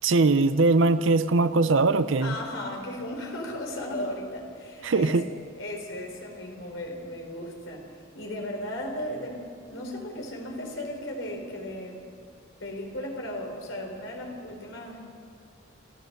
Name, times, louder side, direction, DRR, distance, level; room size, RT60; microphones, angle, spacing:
voice 1, 0.0-2.4 4.8-5.3, right 3 dB, 70° right, 13 dB, 0.6 m, -21 dB
voice 2, 2.2-5.2 5.6-7.9 8.1-9.4 9.7-12.0 12.6-15.0, left 1 dB, 70° left, 2 dB, 4.1 m, -36 dB
27.0 x 14.5 x 6.7 m, 2.4 s
head